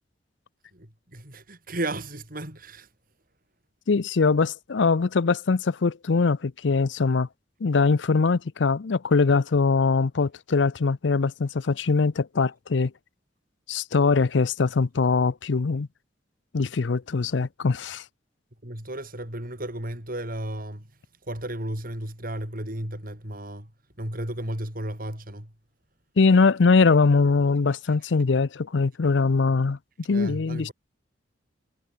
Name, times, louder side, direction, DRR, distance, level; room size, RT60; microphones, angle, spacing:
voice 1, 1.1-2.9 18.6-20.8 21.3-23.7 24.0-25.5 30.1-30.7, right 1 dB, 50° right, 7.0 m, -34 dB
voice 2, 3.9-7.3 7.6-12.9 13.7-15.9 16.5-18.0 26.2-29.8 30.1-30.7, left 4 dB, 75° left, 0.6 m, -22 dB
head